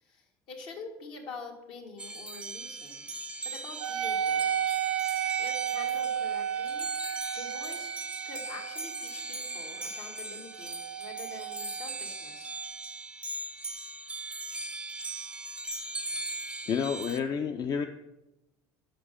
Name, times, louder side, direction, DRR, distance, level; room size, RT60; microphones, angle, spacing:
voice 1, 0.0-3.1 3.4-4.6 5.4-6.9 7.3-12.5, left 4 dB, 70° left, 2 dB, 1.7 m, -46 dB
sound 1, 2.0-17.2, right 2 dB, 10° right, 0.5 m, -39 dB
Wind instrument woodwind instrument, 3.8-12.7, right 9 dB, 85° right, 0.7 m, -33 dB
voice 2, 16.7-17.9, left 6 dB, 45° left, 6 dB, 0.5 m, -29 dB
6.0 x 5.5 x 6.2 m, 0.94 s
supercardioid pair, 90°, 10 cm